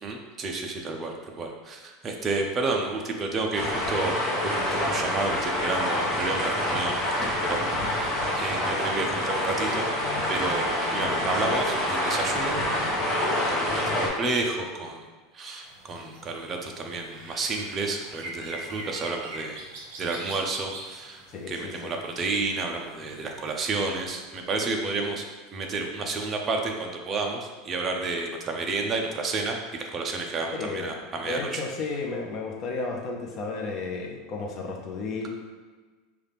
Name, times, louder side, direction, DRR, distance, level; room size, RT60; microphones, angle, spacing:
voice 1, 0.0-4.2 4.4-9.9 10.3-12.6 13.0-15.0 15.3-19.6 20.0-25.3 25.5-31.6, right 3 dB, 20° right, 2 dB, 0.5 m, -31 dB
sound 1, 3.5-14.1, left 1 dB, 10° left, 1.0 m, -27 dB
sound 2, 15.6-23.9, right 2 dB, 60° right, 1.0 m, -44 dB
voice 2, 21.3-21.9 24.9-25.0 30.5-30.9 31.2-35.3, left 3 dB, 35° left, 1 dB, 0.7 m, -33 dB
5.7 x 2.4 x 3.4 m, 1.4 s
supercardioid pair, 155°, 0 cm